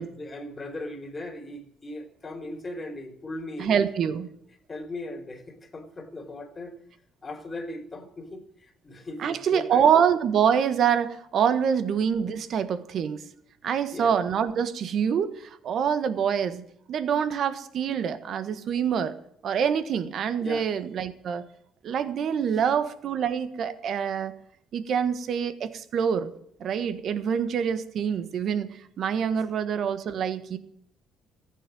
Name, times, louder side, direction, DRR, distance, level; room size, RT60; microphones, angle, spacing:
voice 1, 0.0-3.8 4.7-6.8 7.2-9.8 13.9-14.2 20.4-20.7, left 1 dB, 25° left, 4 dB, 3.5 m, -38 dB
voice 2, 3.6-4.3 9.2-13.2 13.6-16.6 16.9-19.1 19.4-21.4 21.8-24.3 24.7-26.3 26.6-30.6, right 7 dB, 60° right, 12 dB, 1.4 m, -25 dB
15.0 x 9.2 x 7.6 m, 0.69 s
cardioid pair, 85°, 0 cm